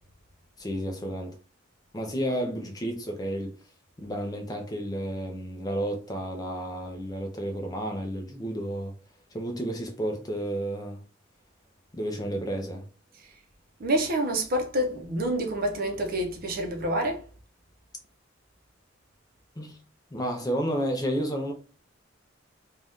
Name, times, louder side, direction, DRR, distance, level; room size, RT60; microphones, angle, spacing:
voice 1, 0.6-1.4 1.9-3.5 4.0-8.9 9.3-11.0 11.9-12.8 19.6-19.8 20.1-21.5, equal, 20° left, 0.5 m, -31 dB
voice 2, 13.8-17.2, right 1 dB, 50° right, 0.6 m, -27 dB
2.6 x 2.3 x 3.4 m
head